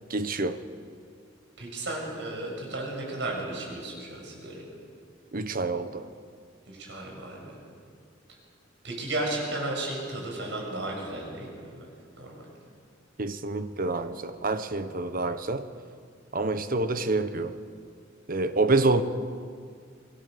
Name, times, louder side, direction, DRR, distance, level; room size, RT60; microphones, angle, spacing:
voice 1, 0.1-0.6 5.3-6.1 13.2-15.7 16.3-17.6 18.3-19.0, right 3 dB, 50° right, 1.2 m, -27 dB
voice 2, 1.6-4.7 6.7-7.5 8.8-11.9 12.2-12.4, right 2 dB, 70° right, 7.7 m, -34 dB
27.5 x 22.0 x 6.9 m
head